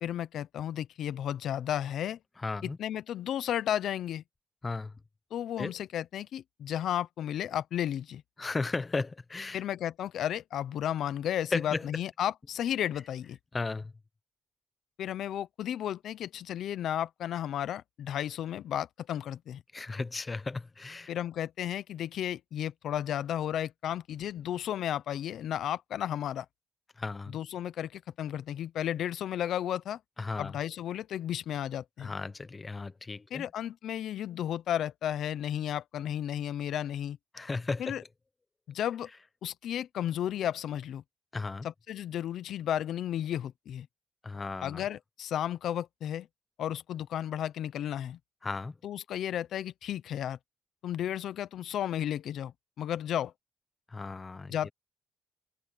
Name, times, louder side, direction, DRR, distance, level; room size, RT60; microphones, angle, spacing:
voice 1, 0.0-2.2 2.6-4.2 5.3-8.2 9.5-13.4 15.0-19.6 21.1-26.5 27.3-30.0 30.4-32.1 33.3-37.2 37.8-38.0 38.7-39.1 39.4-41.0 41.6-43.9 44.6-46.3 46.6-48.2 48.8-50.4 50.8-53.3 54.5-54.7, left 10 dB, 70° left, 0.9 m, -33 dB
voice 2, 2.4-2.8 4.6-4.9 5.6-5.7 8.4-9.6 11.5-11.9 13.5-13.9 19.7-21.1 27.0-27.4 30.2-30.6 32.0-33.5 37.3-38.0 41.3-41.7 44.2-44.8 48.4-48.8 53.9-54.5, left 3 dB, 25° left, 1.0 m, -35 dB
cardioid pair, 90°, 0 cm